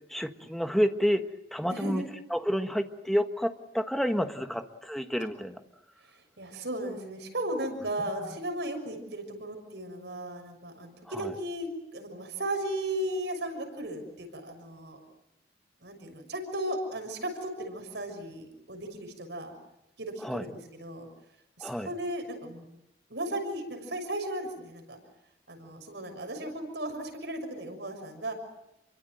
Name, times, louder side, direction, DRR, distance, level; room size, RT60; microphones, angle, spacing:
voice 1, 0.1-1.2 1.5-2.0 2.3-5.6 11.1-11.3 20.2-20.4 21.6-21.9, equal, ahead, 6 dB, 1.4 m, -29 dB
voice 2, 1.7-2.1 5.2-5.3 6.0-15.0 15.8-19.5 20.0-21.1 21.6-22.7 23.1-25.0 25.5-28.3, right 1 dB, 80° right, 5 dB, 6.5 m, -36 dB
28.0 x 24.0 x 7.9 m, 0.85 s
head